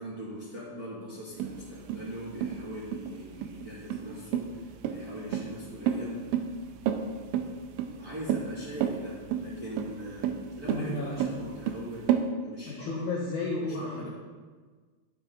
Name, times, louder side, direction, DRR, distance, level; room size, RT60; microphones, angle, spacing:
voice 1, 0.0-6.2 7.7-12.1 12.4-13.0 13.6-14.1, equal, 25° right, -9 dB, 2.1 m, -41 dB
sound 1, 1.4-12.3, right 9 dB, 90° right, 3.1 m, -31 dB
voice 2, 10.7-11.1 12.7-14.1, left 2 dB, 65° left, -4 dB, 1.9 m, -33 dB
11.5 x 10.5 x 4.0 m, 1.5 s
omnidirectional pair, 5.5 m